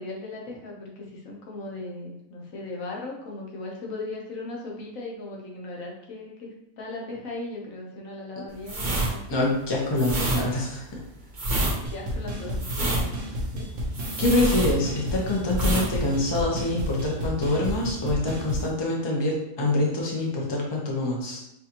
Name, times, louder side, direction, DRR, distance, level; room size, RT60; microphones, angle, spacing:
voice 1, 0.0-6.5 6.8-9.4 11.7-12.9 13.5-13.7, left 2 dB, 75° left, -1 dB, 1.3 m, -37 dB
sound 1, 8.6-15.2 15.5-15.9 16.2-16.4, right 1 dB, 40° right, 1.0 m, -27 dB
voice 2, 9.3-11.0 14.2-21.4, left 2 dB, 25° left, -2 dB, 0.7 m, -25 dB
sound 2, 11.8-18.7, equal, 65° right, 1.1 m, -32 dB
5.9 x 2.5 x 2.9 m, 0.83 s
omnidirectional pair, 1.4 m